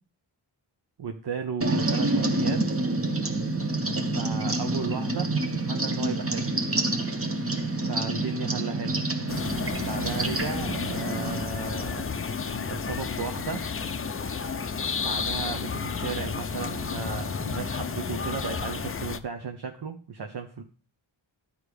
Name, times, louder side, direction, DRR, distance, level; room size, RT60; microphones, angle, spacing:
voice 1, 1.0-2.8 3.9-5.3 5.7-6.5 7.8-9.0 9.8-12.1 12.7-13.7 15.0-20.6, right 5 dB, 55° right, 5 dB, 0.9 m, -35 dB
sound 1, 1.6-11.4, right 2 dB, 30° right, 1.0 m, -28 dB
sound 2, 9.3-19.2, left 5 dB, 30° left, 0.5 m, -31 dB
12.0 x 4.9 x 3.4 m, 0.41 s
cardioid pair, 65°, 48 cm